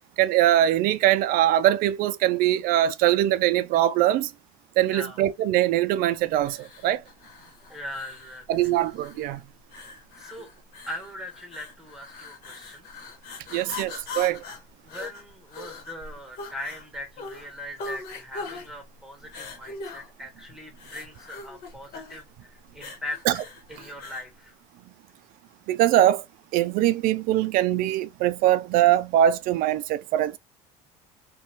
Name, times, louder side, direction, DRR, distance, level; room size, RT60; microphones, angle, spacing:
voice 1, 0.2-4.3 4.8-7.0 8.5-9.4 13.5-14.4 23.3-23.4 25.7-26.2 26.5-30.4, right 13 dB, 60° right, 0.4 m, -22 dB
voice 2, 4.9-5.2 7.7-8.7 10.1-10.5 10.9-12.9 13.5-13.9 14.8-23.2 23.7-24.6, left 1 dB, 5° right, 1.3 m, -40 dB
sound 1, 6.4-24.3, left 3 dB, 65° left, 1.1 m, -41 dB
2.7 x 2.3 x 2.7 m
hypercardioid pair, 75°, 17 cm